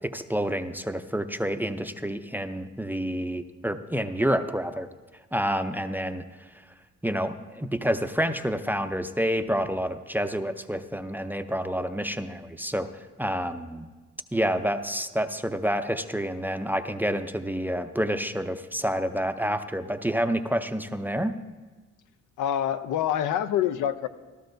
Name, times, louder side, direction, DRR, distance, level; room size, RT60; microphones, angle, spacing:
voice 1, 0.0-4.9 5.3-6.2 6.5-6.6 7.0-12.9 13.2-13.9 14.3-21.4, equal, 5° right, 8 dB, 0.5 m, -28 dB
voice 2, 22.4-24.1, left 10 dB, 85° left, 12 dB, 0.6 m, -26 dB
14.5 x 12.5 x 2.6 m, 1.3 s
cardioid pair, 90°, 30 cm